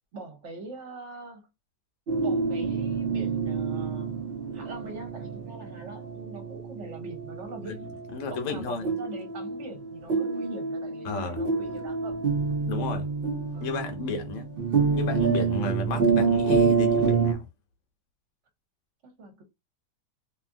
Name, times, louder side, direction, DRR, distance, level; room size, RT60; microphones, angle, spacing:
voice 1, 0.1-1.4 2.2-4.3 4.5-7.9 8.3-12.2 19.0-19.4, right 2 dB, 50° right, 1.1 m, -42 dB
sound 1, 2.1-17.3, right 5 dB, 85° right, 0.5 m, -27 dB
voice 2, 7.6-8.9 11.0-11.4 12.7-13.1 13.6-14.5 14.9-17.5, left 4 dB, 60° left, 1.0 m, -33 dB
2.8 x 2.5 x 2.5 m
omnidirectional pair, 1.7 m